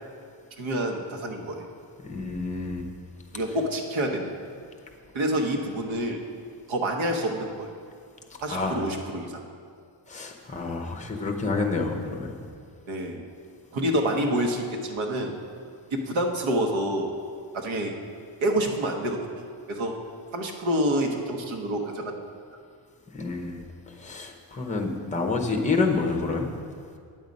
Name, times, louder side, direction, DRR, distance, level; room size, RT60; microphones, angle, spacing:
voice 1, 0.6-1.6 3.3-4.3 5.1-6.2 6.7-7.7 8.4-9.4 12.9-13.3 13.7-15.3 15.9-17.1 17.5-17.9 18.4-19.9 20.3-22.2, right 1 dB, 70° right, 2 dB, 1.2 m, -27 dB
voice 2, 2.0-2.9 8.5-8.9 10.1-12.5 23.1-26.5, left 3 dB, 15° left, 3 dB, 0.8 m, -28 dB
9.2 x 7.2 x 5.3 m, 2.2 s
wide cardioid pair, 175°, 49 cm